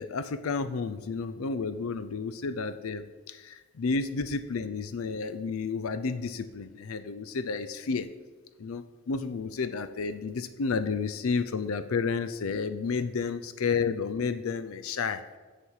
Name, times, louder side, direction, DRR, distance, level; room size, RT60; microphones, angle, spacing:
voice 1, 0.0-8.1 8.6-15.2, left 4 dB, 80° left, 11 dB, 0.5 m, -31 dB
7.4 x 6.7 x 4.7 m, 1.3 s
head